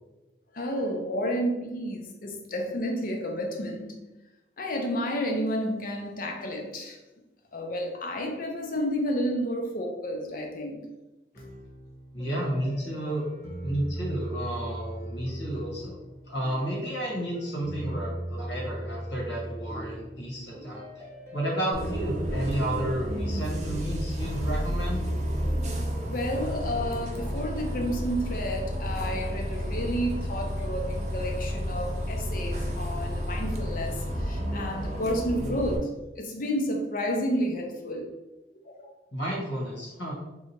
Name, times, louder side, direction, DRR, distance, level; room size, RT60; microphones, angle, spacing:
voice 1, 0.5-3.9 4.6-7.0 7.5-10.8 26.1-35.9 36.2-38.1 38.6-38.9, equal, 50° left, 3 dB, 0.6 m, -31 dB
sound 1, 11.3-28.1, right 1 dB, 15° left, 0.7 m, -39 dB
voice 2, 12.1-13.2 13.6-16.0 16.3-20.8 21.3-25.1 39.1-40.1, right 1 dB, 75° left, -4 dB, 1.3 m, -32 dB
Bus, 21.7-35.8, equal, 40° right, 0.5 m, -31 dB
2.9 x 2.3 x 4.2 m, 1.0 s
head